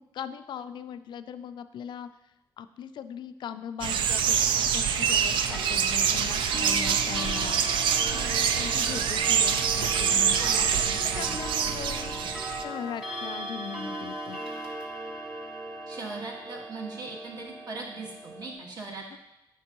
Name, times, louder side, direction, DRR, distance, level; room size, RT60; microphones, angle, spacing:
voice 1, 0.0-2.1 2.6-7.6 8.1-10.4 10.9-12.2 12.6-14.4 19.1-19.2, left 8 dB, 65° left, 11 dB, 0.4 m, -39 dB
sound 1, 3.8-12.6, right 7 dB, 75° right, 0.4 m, -25 dB
Clock, 5.4-18.5, right 1 dB, 10° right, 1.4 m, -38 dB
voice 2, 10.4-11.4 11.7-11.8 12.1-12.3 15.9-19.2, right 3 dB, 55° right, -1 dB, 1.6 m, -40 dB
7.9 x 5.1 x 2.9 m, 0.87 s
cardioid pair, 90°, 8 cm